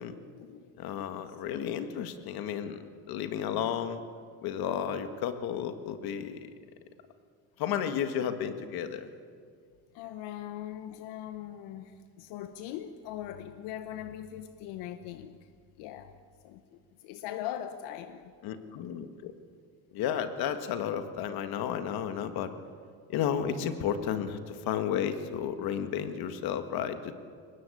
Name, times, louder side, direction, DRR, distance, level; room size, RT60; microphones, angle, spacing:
voice 1, 0.2-0.7 0.9-1.3 2.2-2.3 9.9-15.4 15.8-16.1 16.4-18.3, left 11 dB, 90° left, 9 dB, 1.1 m, -41 dB
voice 2, 0.8-2.8 3.1-4.0 4.4-6.5 7.6-9.1 18.4-19.3 19.9-22.5 23.1-27.1, left 8 dB, 65° left, 8 dB, 1.8 m, -32 dB
23.0 x 20.0 x 8.6 m, 2.2 s
cardioid pair, 145°, 40 cm